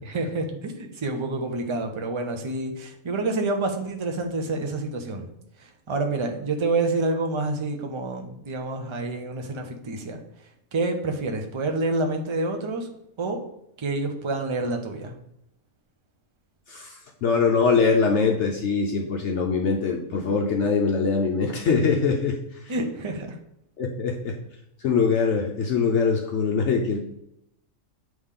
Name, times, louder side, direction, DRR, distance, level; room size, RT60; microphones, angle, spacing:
voice 1, 0.1-5.3 5.6-10.2 10.7-12.9 13.2-13.4 13.8-15.1 22.7-23.4, right 2 dB, 40° right, 4 dB, 0.4 m, -28 dB
voice 2, 16.7-22.7 23.8-24.4 24.8-27.0, left 5 dB, 65° left, 1 dB, 0.9 m, -23 dB
8.2 x 3.1 x 3.7 m, 0.79 s
omnidirectional pair, 1.4 m